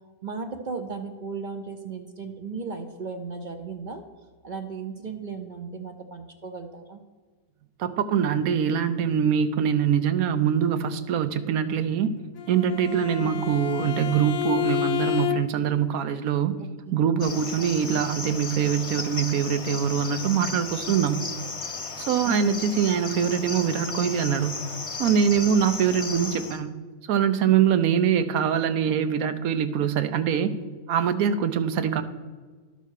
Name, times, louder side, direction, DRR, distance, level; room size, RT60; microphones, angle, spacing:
voice 1, 0.2-4.0 4.4-7.0 13.2-13.4 16.6-17.0 22.2-22.5, right 5 dB, 50° right, 6 dB, 0.5 m, -36 dB
voice 2, 7.8-12.1 12.5-16.6 16.9-21.3 22.0-24.6 25.0-26.7 27.1-30.5 30.9-32.0, right 8 dB, 80° right, 11 dB, 1.1 m, -23 dB
Bowed string instrument, 12.4-15.8, left 14 dB, 70° left, 1.0 m, -29 dB
Cricket, 17.2-26.6, left 4 dB, 40° left, 0.4 m, -35 dB
11.5 x 4.1 x 6.4 m, 1.4 s
omnidirectional pair, 1.5 m